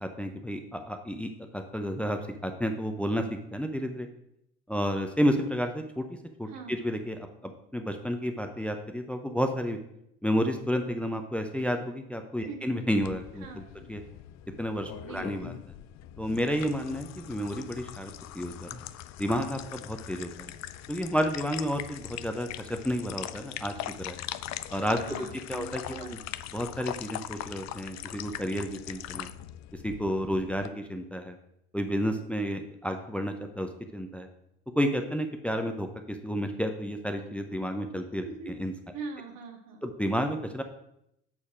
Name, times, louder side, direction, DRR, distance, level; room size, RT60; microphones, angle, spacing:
voice 1, 0.0-4.1 4.7-6.0 6.4-9.8 10.2-13.6 13.9-14.0 14.6-15.5 16.2-18.8 19.2-20.5 20.9-24.2 24.7-25.0 25.5-26.2 26.5-29.3 29.8-31.4 31.7-34.3 34.8-38.7 39.8-40.6, equal, 5° left, 6 dB, 0.6 m, -31 dB
voice 2, 6.5-6.8 12.4-12.7 13.4-13.9 14.9-15.6 24.9-26.1 38.2-38.6 38.9-39.9, right 4 dB, 65° right, 3 dB, 1.5 m, -43 dB
sound 1, 13.0-30.7, left 13 dB, 50° left, 0.5 m, -41 dB
7.3 x 4.2 x 4.9 m, 0.79 s
hypercardioid pair, 65°, 36 cm